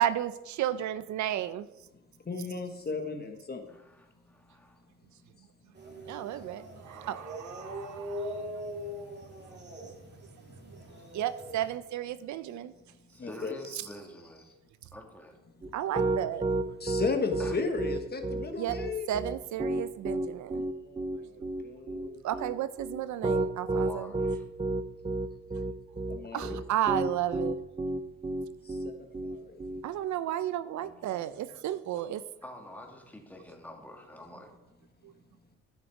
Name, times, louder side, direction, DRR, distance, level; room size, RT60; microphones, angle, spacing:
voice 1, 0.0-1.7 6.1-8.4 10.6-10.8 11.1-12.7 15.7-16.5 18.6-18.8 19.1-20.6 22.2-24.1 26.3-27.6 29.8-32.2 35.0-35.1, right 11 dB, 70° right, 14 dB, 0.6 m, -33 dB
voice 2, 2.3-3.6 13.2-13.5 16.8-19.1 20.8-21.0 21.3-22.2 26.1-26.6 28.8-28.9 29.2-29.6, left 4 dB, 30° left, 6 dB, 1.2 m, -34 dB
voice 3, 3.7-4.8 13.1-14.6 14.9-15.4 17.4-17.6 23.7-24.5 30.8-31.5 32.4-34.5, equal, 5° left, 1 dB, 2.3 m, -47 dB
sound 1, 5.7-11.7, equal, 35° right, 2.6 m, -41 dB
Piano, 15.6-29.8, right 2 dB, 20° right, 0.7 m, -31 dB
12.5 x 6.3 x 4.8 m, 0.94 s
cardioid pair, 90°, 30 cm